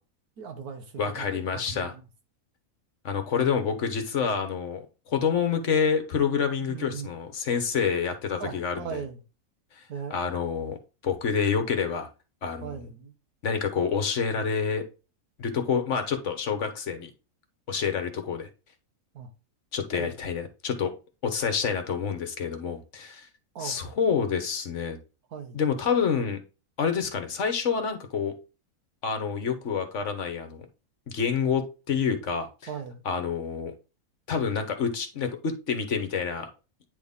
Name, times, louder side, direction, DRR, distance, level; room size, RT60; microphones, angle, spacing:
voice 1, 0.4-1.3 1.5-2.0 6.6-7.1 8.4-9.2 9.9-10.3 12.6-13.1 19.1-19.3 19.9-20.1 23.5-23.8 25.3-25.6 32.7-33.0, right 6 dB, 90° right, 1.6 m, -38 dB
voice 2, 1.0-1.9 3.0-9.0 10.1-10.8 11.0-12.1 12.4-12.8 13.4-14.8 15.4-17.1 17.7-18.5 19.7-20.9 21.2-23.3 23.6-25.0 25.5-26.4 26.8-28.3 29.0-30.7 31.1-32.5 33.0-33.7 34.3-36.5, left 6 dB, 55° left, 1.3 m, -27 dB
9.2 x 4.1 x 3.6 m
omnidirectional pair, 1.5 m